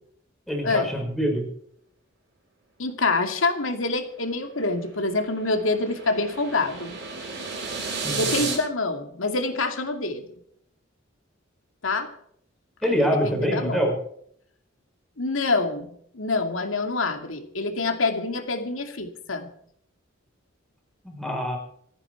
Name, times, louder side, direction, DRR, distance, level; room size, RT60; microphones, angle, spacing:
voice 1, 0.5-1.5 8.0-8.4 12.8-14.0 21.0-21.6, equal, ahead, 0 dB, 5.5 m, -25 dB
voice 2, 2.8-7.0 8.2-10.3 11.8-12.1 12.8-13.9 15.2-19.5, left 3 dB, 85° left, 6 dB, 2.5 m, -26 dB
sound 1, 4.3-8.6, right 4 dB, 60° right, 7.4 m, -33 dB
27.0 x 9.9 x 4.7 m, 0.67 s
head